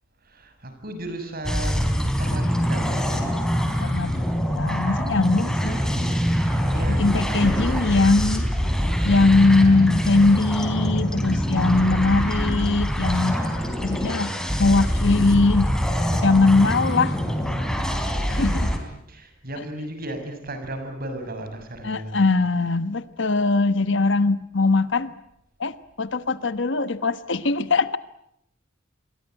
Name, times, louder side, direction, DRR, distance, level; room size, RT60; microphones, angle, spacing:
voice 1, 0.3-3.0 6.7-8.9 18.3-18.8 19.1-22.2, right 1 dB, 50° right, 7 dB, 6.7 m, -35 dB
sound 1, 1.4-18.8, equal, 5° left, 4.0 m, -24 dB
voice 2, 3.6-4.2 4.6-5.8 6.9-8.5 9.0-13.4 13.8-14.3 14.6-15.7 16.1-17.1 18.3-18.7 19.6-19.7 21.8-25.1 25.6-28.0, left 3 dB, 65° left, 13 dB, 1.2 m, -21 dB
29.0 x 22.5 x 9.1 m, 0.79 s
head